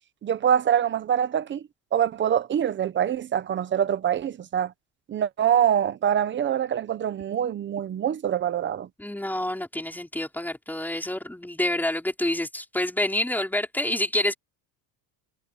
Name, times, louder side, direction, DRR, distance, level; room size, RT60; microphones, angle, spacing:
voice 1, 0.2-1.6 1.9-4.7 5.1-8.9, right 9 dB, 25° right, 0.6 m, -24 dB
voice 2, 9.0-14.3, left 1 dB, 5° left, 4.6 m, -27 dB
cardioid pair, 175°, 48 cm